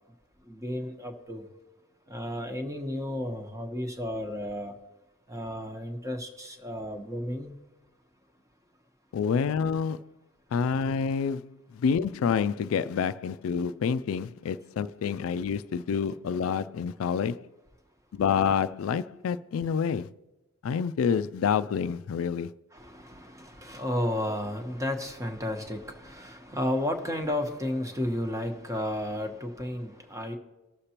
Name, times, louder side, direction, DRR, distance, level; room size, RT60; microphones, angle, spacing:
voice 1, 0.4-1.5 2.1-4.7 5.3-7.6 22.7-30.3, left 1 dB, 15° right, 1.0 m, -33 dB
voice 2, 9.1-10.1 10.5-17.5 18.1-20.1 20.6-22.5, left 6 dB, 90° left, 0.3 m, -28 dB
19.5 x 6.7 x 2.9 m
head